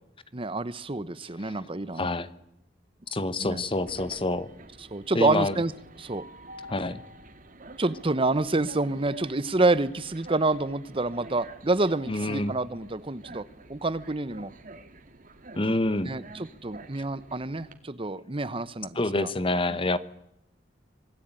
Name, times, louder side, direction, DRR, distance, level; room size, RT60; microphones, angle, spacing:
voice 1, 0.3-2.1 3.4-3.6 4.9-5.7 6.0-6.2 7.8-14.5 16.1-19.3 19.7-19.8, right 2 dB, 30° right, 16 dB, 1.0 m, -28 dB
voice 2, 2.0-2.3 3.1-4.5 5.1-5.5 6.7-7.0 12.1-12.5 15.5-16.1 18.9-20.0, left 2 dB, 30° left, 15 dB, 1.2 m, -27 dB
Train, 3.3-17.7, right 2 dB, 50° right, 2.4 m, -48 dB
26.5 x 20.0 x 9.1 m, 0.80 s
head